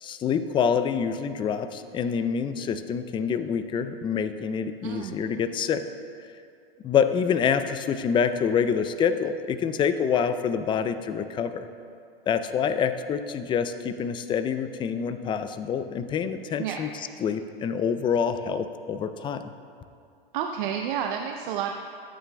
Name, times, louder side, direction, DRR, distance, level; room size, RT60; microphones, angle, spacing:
voice 1, 0.0-5.8 6.8-11.7 12.3-16.9 17.2-19.5, left 7 dB, 15° left, 10 dB, 0.4 m, -26 dB
voice 2, 4.8-5.2 16.6-16.8 20.3-21.7, right 9 dB, 55° right, 4 dB, 0.8 m, -30 dB
23.0 x 8.7 x 2.3 m, 2.5 s
hypercardioid pair, 110°, 30 cm